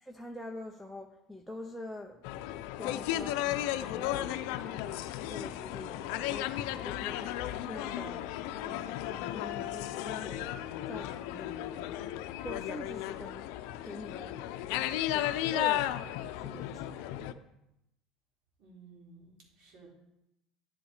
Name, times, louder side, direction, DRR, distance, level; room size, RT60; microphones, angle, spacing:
voice 1, 0.0-2.2 2.8-8.2 8.6-10.5 10.8-12.2 12.4-13.5 13.8-14.4 14.7-16.0 16.4-17.1, left 1 dB, 5° right, 5 dB, 0.7 m, -45 dB
sound 1, 2.2-17.3, left 13 dB, 75° left, 0.5 m, -35 dB
voice 2, 18.6-19.9, right 4 dB, 65° right, -1 dB, 3.7 m, -55 dB
9.6 x 8.5 x 4.9 m, 0.87 s
supercardioid pair, 115°, 0 cm